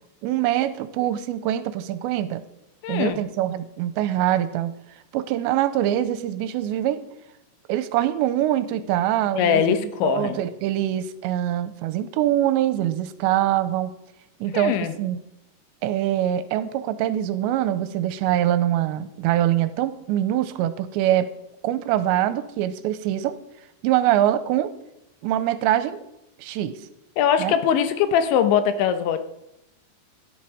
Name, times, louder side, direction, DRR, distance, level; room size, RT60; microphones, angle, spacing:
voice 1, 0.2-2.4 2.9-4.7 5.1-7.0 7.7-13.9 14.4-15.2 15.8-21.3 21.6-23.4 23.8-24.7 25.2-26.0 26.4-26.8 27.4-27.6, right 12 dB, 90° right, 12 dB, 3.0 m, -24 dB
voice 2, 2.8-3.2 9.4-10.4 14.5-14.9 27.2-29.2, left 8 dB, 90° left, 9 dB, 3.4 m, -21 dB
16.5 x 10.5 x 5.0 m, 0.85 s
omnidirectional pair, 5.1 m